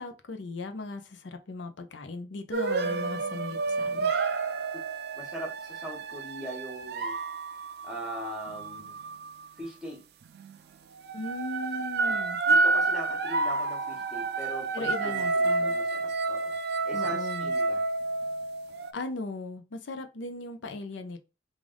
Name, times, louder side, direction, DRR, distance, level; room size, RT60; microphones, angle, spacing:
voice 1, 0.0-4.1 11.1-12.4 14.7-15.7 16.9-17.5 18.9-21.2, left 3 dB, 85° left, 0.6 m, -37 dB
sound 1, 2.5-9.5 10.3-10.6 11.0-18.9, right 3 dB, 60° right, 0.3 m, -29 dB
voice 2, 5.1-7.2 7.8-9.0 9.6-10.1 12.0-12.1 12.5-16.6 16.9-17.8, right 1 dB, ahead, 1.2 m, -40 dB
3.3 x 2.5 x 3.7 m
head